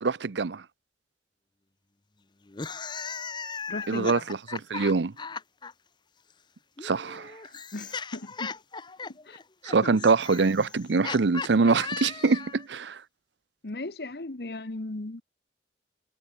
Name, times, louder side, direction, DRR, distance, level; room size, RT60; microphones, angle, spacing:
voice 1, 0.0-0.6 3.9-5.1 6.8-7.3 9.6-13.0, right 4 dB, 85° right, 0.7 m, -24 dB
sound 1, 2.5-5.7 6.8-12.7, left 5 dB, 25° left, 0.7 m, -37 dB
voice 2, 3.7-4.3 7.7-8.6 9.1-9.4 9.8-10.0 13.6-15.2, left 2 dB, 60° left, 1.1 m, -37 dB
head